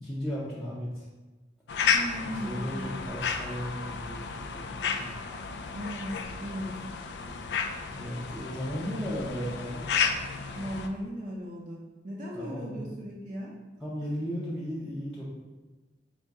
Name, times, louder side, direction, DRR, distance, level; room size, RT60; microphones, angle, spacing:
voice 1, 0.0-1.1 2.2-5.2 7.9-9.8 12.3-13.4 13.8-15.3, equal, ahead, -11 dB, 0.6 m, -36 dB
sound 1, 1.7-10.9, left 6 dB, 65° left, 0.3 m, -32 dB
voice 2, 1.9-3.0 5.7-6.8 10.5-13.5, equal, 45° right, -4 dB, 0.5 m, -37 dB
4.0 x 2.7 x 3.5 m, 1.2 s
head